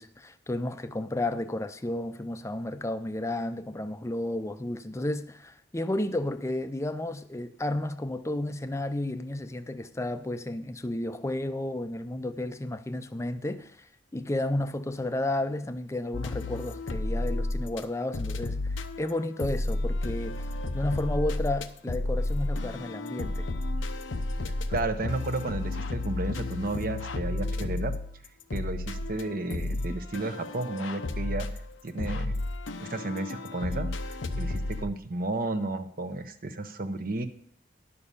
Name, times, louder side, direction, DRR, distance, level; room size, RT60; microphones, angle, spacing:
voice 1, 0.0-23.5, left 1 dB, 15° left, 0.5 m, -32 dB
sound 1, 16.1-17.8 18.1-34.9, left 2 dB, 90° left, 0.8 m, -32 dB
voice 2, 24.7-27.9 28.5-31.5 31.8-32.3 32.8-37.3, right 2 dB, 50° right, 0.9 m, -32 dB
11.0 x 6.7 x 5.5 m
head